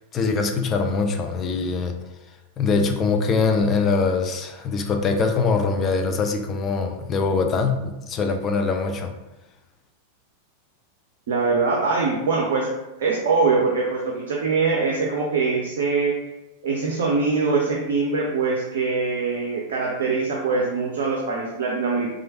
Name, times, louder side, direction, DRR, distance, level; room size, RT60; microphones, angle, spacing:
voice 1, 0.1-1.9 2.6-9.1, left 4 dB, 25° left, 5 dB, 0.4 m, -23 dB
voice 2, 11.3-12.7 13.0-16.1 16.6-22.1, right 4 dB, 60° right, -2 dB, 0.4 m, -23 dB
3.0 x 2.4 x 2.7 m, 0.98 s
figure-of-eight pair, 90°, 0 cm